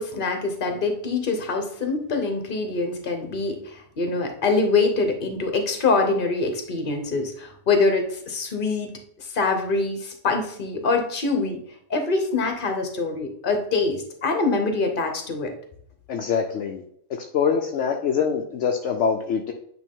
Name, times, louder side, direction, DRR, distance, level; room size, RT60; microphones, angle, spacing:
voice 1, 0.0-8.9 9.2-11.6 11.9-15.5, left 3 dB, 45° left, 5 dB, 1.2 m, -24 dB
voice 2, 16.1-16.8 17.2-19.5, left 6 dB, 70° left, 2 dB, 0.9 m, -24 dB
8.9 x 3.1 x 3.6 m, 0.68 s
omnidirectional pair, 1.3 m